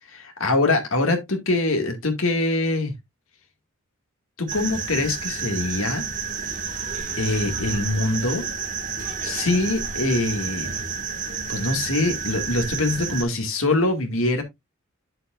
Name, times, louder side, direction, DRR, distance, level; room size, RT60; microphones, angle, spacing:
voice 1, 0.1-2.9 4.4-6.1 7.2-8.4 9.2-10.7 11.5-14.4, left 2 dB, 75° left, 2.1 m, -23 dB
sound 1, 4.5-13.2, right 5 dB, 40° right, 1.9 m, -30 dB
8.5 x 7.6 x 2.5 m
head